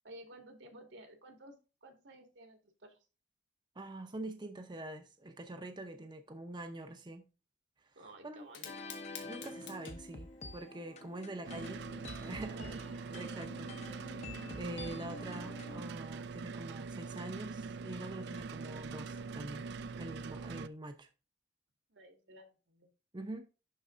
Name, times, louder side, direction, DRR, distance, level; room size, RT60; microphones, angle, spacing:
voice 1, 0.0-3.0 8.0-9.0 12.5-12.7 21.9-22.9, right 1 dB, 85° right, 2.0 m, -54 dB
voice 2, 3.8-7.2 8.2-8.5 9.3-11.9 12.2-14.2 14.6-19.7 20.0-21.1 23.1-23.5, right 1 dB, 25° right, 0.7 m, -45 dB
Fire, 8.4-17.3, left 7 dB, 80° left, 1.7 m, -56 dB
sound 1, 8.6-15.8, left 2 dB, 40° left, 0.8 m, -48 dB
sound 2, 11.4-20.7, right 4 dB, 65° right, 0.4 m, -43 dB
11.0 x 4.1 x 2.5 m
head